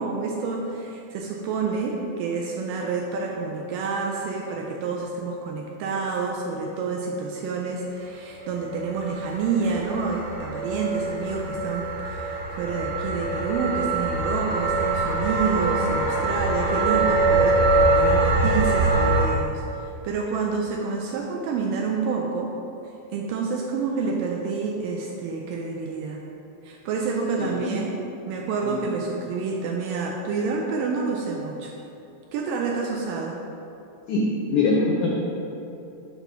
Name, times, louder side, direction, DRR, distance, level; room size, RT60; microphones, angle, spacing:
voice 1, 0.0-22.5 23.1-26.2 26.6-28.0 28.3-31.7 32.3-33.3, right 4 dB, 80° right, 0 dB, 2.0 m, -28 dB
sound 1, 8.7-19.2, right 2 dB, 50° right, 1.5 m, -23 dB
voice 2, 27.4-27.7 28.6-28.8 34.1-35.1, left 3 dB, 85° left, -2 dB, 1.7 m, -23 dB
6.7 x 3.0 x 5.8 m, 2.8 s
omnidirectional pair, 4.2 m